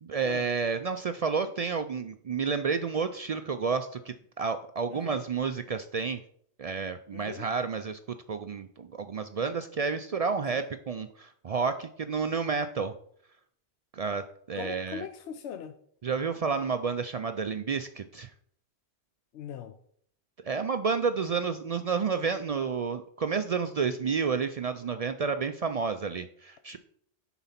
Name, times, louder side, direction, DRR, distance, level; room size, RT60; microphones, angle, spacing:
voice 1, 0.0-6.2 6.6-8.0 8.3-12.9 13.9-15.0 16.0-18.3 20.4-26.8, right 5 dB, 65° right, 0.3 m, -30 dB
voice 2, 4.9-5.2 7.1-7.5 10.5-10.7 14.5-15.8 19.3-19.8, left 8 dB, 80° left, 0.9 m, -41 dB
10.0 x 4.0 x 5.7 m
omnidirectional pair, 1.2 m